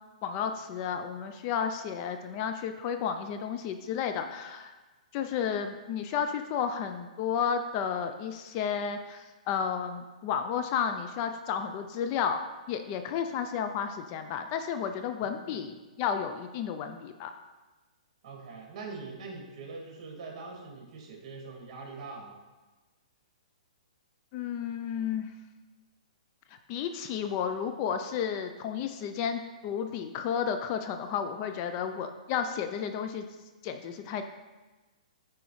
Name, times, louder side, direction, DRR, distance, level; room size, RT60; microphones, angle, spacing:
voice 1, 0.2-4.7 5.1-17.3 24.3-25.3 26.7-33.2 33.6-34.2, left 7 dB, 30° left, 7 dB, 0.4 m, -32 dB
voice 2, 15.2-15.6 18.2-22.4, right 4 dB, 45° right, 0 dB, 2.1 m, -43 dB
9.0 x 4.7 x 3.1 m, 1.2 s
hypercardioid pair, 150°, 4 cm